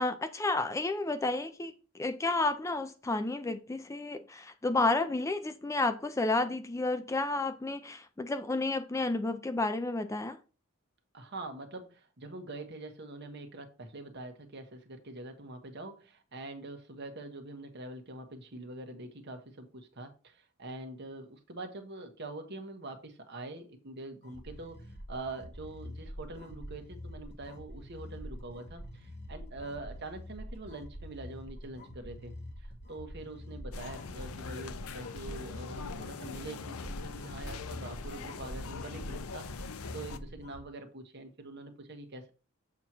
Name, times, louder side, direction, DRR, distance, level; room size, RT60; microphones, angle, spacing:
voice 1, 0.0-10.4, left 2 dB, 15° left, 0.4 m, -31 dB
voice 2, 11.1-32.3 32.6-42.3, right 2 dB, 55° right, 1.2 m, -44 dB
sound 1, 24.2-40.6, equal, 50° left, 1.5 m, -45 dB
sound 2, 33.7-40.2, left 5 dB, 90° left, 0.6 m, -43 dB
7.2 x 3.0 x 6.0 m
head